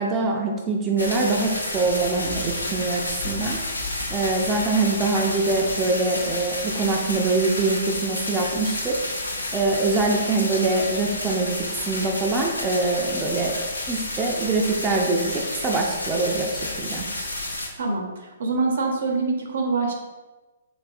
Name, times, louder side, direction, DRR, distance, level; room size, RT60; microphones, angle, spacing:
voice 1, 0.0-3.6 4.1-9.0 9.5-13.6 13.9-17.1, right 3 dB, 20° right, -1 dB, 0.4 m, -24 dB
sound 1, 1.0-17.7, left 2 dB, 85° left, 0.6 m, -30 dB
voice 2, 17.8-19.9, right 3 dB, 65° right, 2 dB, 0.6 m, -25 dB
3.3 x 3.2 x 2.5 m, 1.2 s
figure-of-eight pair, 125°, 0 cm